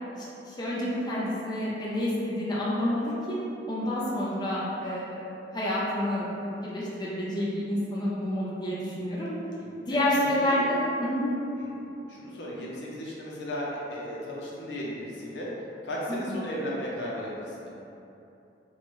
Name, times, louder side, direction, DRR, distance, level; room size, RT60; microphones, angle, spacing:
voice 1, 0.1-3.4 3.7-5.2 5.5-9.3 9.8-11.3 16.3-16.4, left 1 dB, 25° left, -7 dB, 0.6 m, -29 dB
voice 2, 10.1-10.6 11.6-11.7 12.1-15.5 15.8-17.7, equal, 75° left, -5 dB, 0.7 m, -35 dB
4.5 x 2.3 x 3.0 m, 2.8 s
head